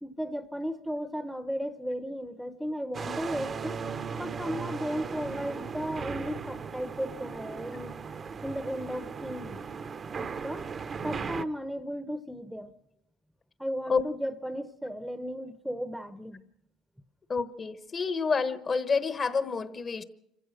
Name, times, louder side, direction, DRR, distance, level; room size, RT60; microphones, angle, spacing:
voice 1, 0.0-3.8 4.2-7.9 8.4-9.6 10.2-10.7 11.0-12.7 13.6-16.4, equal, ahead, 0.8 m, -35 dB
sound 1, 2.9-11.5, right 5 dB, 35° right, 0.8 m, -37 dB
voice 2, 17.3-20.0, left 5 dB, 30° left, 1.1 m, -28 dB
26.0 x 15.5 x 6.5 m
cardioid pair, 110°, 0 cm